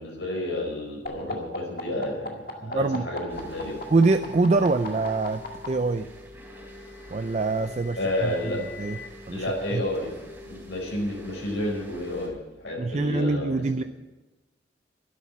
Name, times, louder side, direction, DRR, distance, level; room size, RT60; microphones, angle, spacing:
voice 1, 0.0-3.8 8.0-8.6 9.3-10.1 10.4-13.8, left 1 dB, 70° left, -1 dB, 5.0 m, -31 dB
sound 1, 1.1-5.7 6.8-9.1, left 2 dB, 50° left, 2.0 m, -38 dB
voice 2, 2.6-3.0 3.9-6.1 7.1-8.0 8.2-8.3 8.8-9.0 9.3-9.5 9.7-9.8 12.8-13.8, right 3 dB, 35° right, 9 dB, 0.4 m, -24 dB
sound 2, 3.3-12.3, left 1 dB, 10° right, 3.6 m, -45 dB
12.5 x 11.5 x 7.3 m, 1.1 s
head